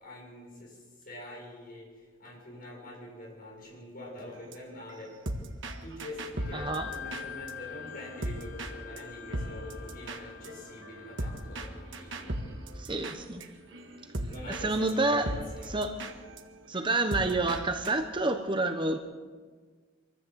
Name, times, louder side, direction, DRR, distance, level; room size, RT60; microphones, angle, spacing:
voice 1, 0.0-5.2 5.8-12.4 14.3-15.8, left 2 dB, 45° left, -2 dB, 7.4 m, -45 dB
sound 1, 4.3-7.5 7.8-8.7 9.0-9.1 9.3-14.6 14.9-15.0 15.2-18.0, right 1 dB, 60° right, 1.8 m, -38 dB
sound 2, 6.4-15.1, left 6 dB, 85° left, 3.9 m, -47 dB
voice 2, 6.5-6.9 12.8-13.4 14.6-15.3 15.7-16.0 16.7-19.0, right 2 dB, 25° right, 6 dB, 1.0 m, -28 dB
24.0 x 14.5 x 8.2 m, 1.5 s
head